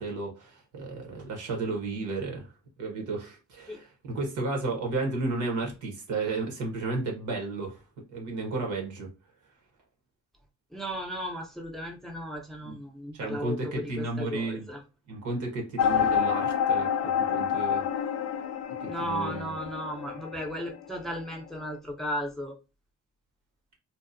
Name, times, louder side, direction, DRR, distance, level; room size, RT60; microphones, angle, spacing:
voice 1, 0.0-2.5 2.8-7.8 8.1-9.1 12.6-12.7 13.1-14.7 15.1-17.9 18.8-19.6, right 3 dB, 80° right, 1.0 m, -33 dB
voice 2, 10.7-14.8 18.9-22.5, equal, ahead, 0.5 m, -35 dB
sound 1, 15.8-21.3, left 8 dB, 60° left, 0.4 m, -28 dB
2.7 x 2.1 x 2.5 m
cardioid pair, 90°, 30 cm